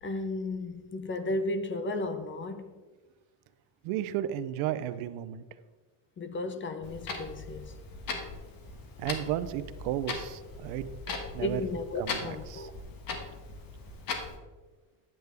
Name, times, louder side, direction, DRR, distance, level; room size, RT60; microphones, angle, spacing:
voice 1, 0.0-2.8 6.2-7.8 11.4-12.7, left 2 dB, 25° left, 0.6 m, -34 dB
voice 2, 3.8-5.4 9.0-11.6 12.0-12.2 12.5-12.7, right 12 dB, 85° right, 0.7 m, -33 dB
Clock, 6.8-14.4, left 4 dB, 45° left, 1.5 m, -39 dB
10.5 x 8.0 x 3.4 m
cardioid pair, 135°, 48 cm